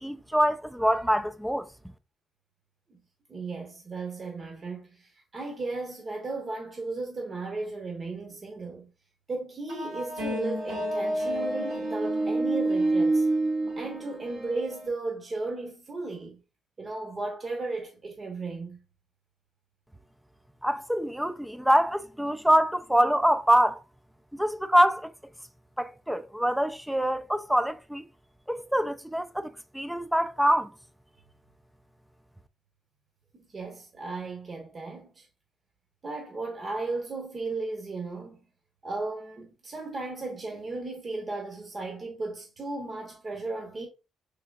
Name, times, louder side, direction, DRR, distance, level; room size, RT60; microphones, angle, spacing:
voice 1, 0.0-1.7 20.6-23.8 24.3-25.1 25.8-28.0 28.5-30.7, equal, 5° right, 0.3 m, -25 dB
voice 2, 3.3-8.9 9.3-13.3 13.8-16.4 16.8-18.8 33.3-35.3 36.0-38.4 38.8-43.9, right 3 dB, 35° right, 0.8 m, -35 dB
sound 1, 9.7-14.9, right 2 dB, 85° right, 1.7 m, -28 dB
3.3 x 3.1 x 2.3 m
cardioid pair, 90°, 0 cm